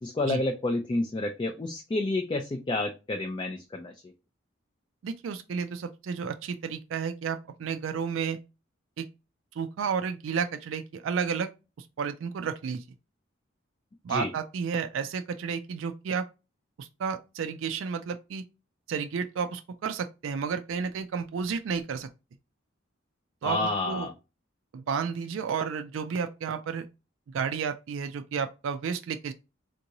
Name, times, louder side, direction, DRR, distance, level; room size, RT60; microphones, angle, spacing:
voice 1, 0.0-4.1 14.1-14.3 23.4-24.1, left 2 dB, 25° left, 0.3 m, -29 dB
voice 2, 5.0-8.4 9.0-9.1 9.6-11.5 11.8-12.8 14.0-16.3 16.8-18.4 18.9-22.1 23.4-24.1 24.7-26.9 27.3-29.3, right 6 dB, 80° right, 0.3 m, -32 dB
3.5 x 2.6 x 2.9 m
head